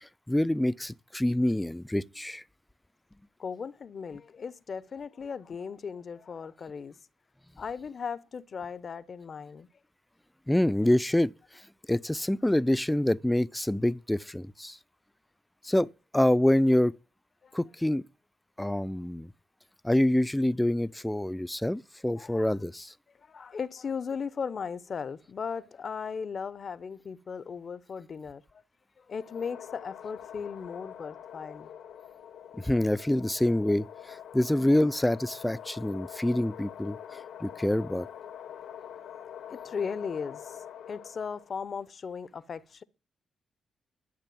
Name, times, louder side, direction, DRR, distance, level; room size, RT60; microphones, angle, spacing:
voice 1, 0.0-2.4 10.5-11.3 11.9-14.8 15.6-16.9 17.5-18.0 18.6-19.3 19.8-22.9 32.6-37.0 37.4-38.1, left 1 dB, 10° left, 0.6 m, -26 dB
voice 2, 3.4-6.9 7.6-9.7 17.4-17.6 22.2-22.6 23.2-28.6 29.0-31.7 38.5-38.6 39.5-42.8, left 6 dB, 55° left, 0.8 m, -37 dB
sound 1, 29.1-41.6, left 9 dB, 80° left, 1.2 m, -45 dB
12.5 x 6.7 x 9.3 m
supercardioid pair, 50°, 0 cm